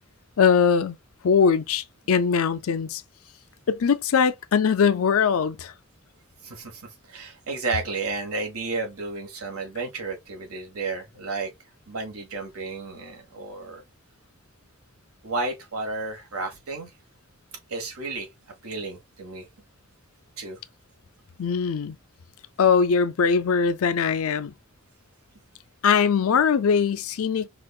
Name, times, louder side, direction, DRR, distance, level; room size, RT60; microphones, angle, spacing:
voice 1, 0.4-1.0 1.2-3.0 3.7-5.7 21.4-22.0 22.6-24.5 25.8-27.5, left 6 dB, 75° left, 0.4 m, -21 dB
voice 2, 6.4-11.5 11.9-13.8 15.2-16.9 17.7-18.3 18.6-19.5 20.4-20.6, right 3 dB, 85° right, 1.4 m, -32 dB
4.9 x 2.5 x 2.3 m
head